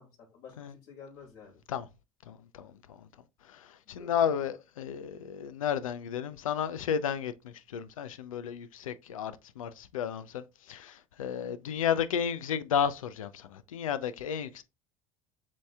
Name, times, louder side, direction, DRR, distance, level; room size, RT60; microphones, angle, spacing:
voice 1, 0.0-1.6 3.9-4.3, left 6 dB, 65° left, 2.2 m, -51 dB
voice 2, 2.3-3.0 3.5-14.6, left 8 dB, 90° left, 0.4 m, -33 dB
7.2 x 2.8 x 2.3 m
hypercardioid pair, 75°, 17 cm